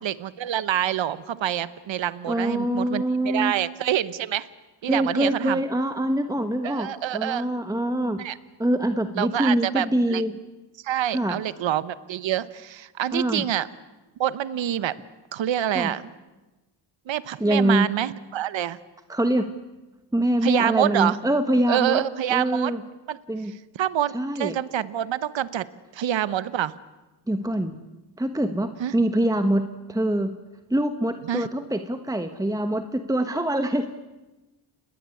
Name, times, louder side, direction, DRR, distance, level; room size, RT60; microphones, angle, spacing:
voice 1, 0.0-4.5 4.8-5.6 6.6-7.5 8.2-8.4 9.2-10.2 10.8-13.7 14.2-15.0 15.3-16.0 17.1-18.8 20.4-21.2 21.7-22.7 23.1-23.2 23.8-25.7 25.9-26.7 28.8-28.9 31.3-31.5, right 11 dB, 75° right, 15 dB, 1.1 m, -26 dB
voice 2, 2.3-3.5 4.9-8.2 8.6-10.3 11.1-11.4 13.1-13.5 15.7-15.9 17.4-17.9 19.1-19.5 20.1-22.0 22.3-22.8 23.3-23.5 24.1-24.6 27.3-27.8 28.2-30.4 30.7-33.9, right 1 dB, 10° right, 8 dB, 1.3 m, -24 dB
29.5 x 21.0 x 8.5 m, 1.1 s
cardioid pair, 100°, 45 cm